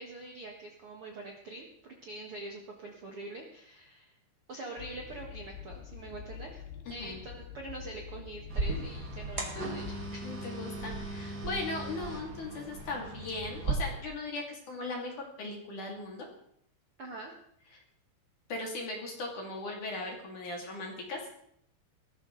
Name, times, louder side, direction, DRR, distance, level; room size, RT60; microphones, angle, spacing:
voice 1, 0.0-4.1 4.5-6.6 6.9-10.2 17.0-17.4, right 2 dB, 85° right, 0 dB, 1.2 m, -44 dB
Train, 4.8-10.1, left 9 dB, 70° left, 2.6 m, -46 dB
voice 2, 6.9-7.2 10.2-16.3 17.7-17.8 18.5-21.2, left 2 dB, 45° left, 0 dB, 3.8 m, -38 dB
sound 1, 8.5-13.7, right 3 dB, 45° right, 1.3 m, -37 dB
19.0 x 13.5 x 4.0 m, 0.69 s
omnidirectional pair, 5.4 m